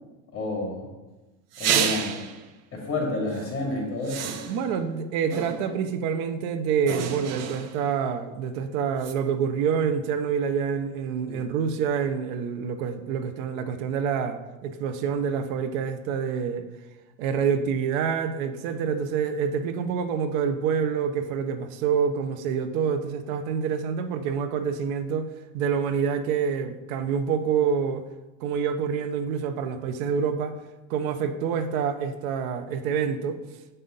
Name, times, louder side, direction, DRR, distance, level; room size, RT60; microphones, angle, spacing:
voice 1, 0.3-0.9 1.6-2.1 2.7-4.4 11.3-11.4, left 2 dB, 30° left, -1 dB, 2.6 m, -30 dB
sound 1, 1.5-2.4 3.3-3.5 4.0-4.8 5.3-5.9 6.9-7.9 9.0-9.1, right 9 dB, 40° right, 0.6 m, -30 dB
voice 2, 4.5-16.7 17.2-28.0 28.4-30.6 30.9-33.4, right 7 dB, 75° right, 10 dB, 0.7 m, -27 dB
7.7 x 5.5 x 3.9 m, 1.1 s
supercardioid pair, 135°, 42 cm